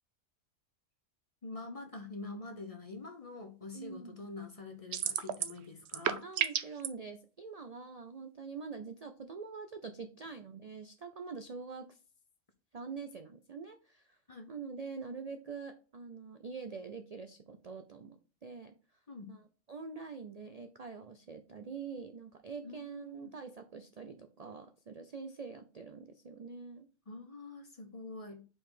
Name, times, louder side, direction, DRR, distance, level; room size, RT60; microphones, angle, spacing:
voice 1, 1.4-6.2 14.3-14.5 19.1-19.3 22.6-23.3 27.1-28.5, left 3 dB, 35° left, 0.7 m, -45 dB
voice 2, 3.7-4.3 6.2-12.0 12.7-14.2 14.5-18.7 19.3-26.9, right 5 dB, 50° right, 0.4 m, -45 dB
sound 1, 4.9-5.6 5.9-6.9, right 10 dB, 65° right, 0.8 m, -31 dB
5.3 x 4.7 x 3.8 m
omnidirectional pair, 1.3 m